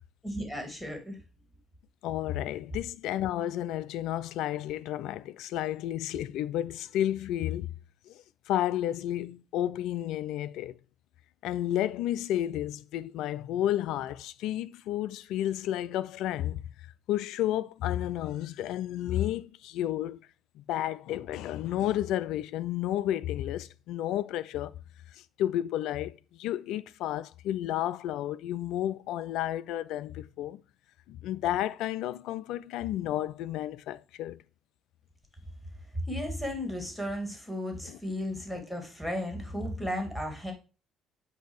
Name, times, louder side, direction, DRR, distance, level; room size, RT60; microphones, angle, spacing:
voice 1, 0.2-1.2 35.9-40.5, equal, 5° left, 2.2 m, -34 dB
voice 2, 2.0-7.7 8.1-10.8 11.4-16.6 17.1-20.2 20.6-24.7 25.1-30.6 31.1-34.4 37.9-38.0, left 12 dB, 75° left, 0.3 m, -31 dB
8.0 x 2.7 x 4.6 m
hypercardioid pair, 60°, 0 cm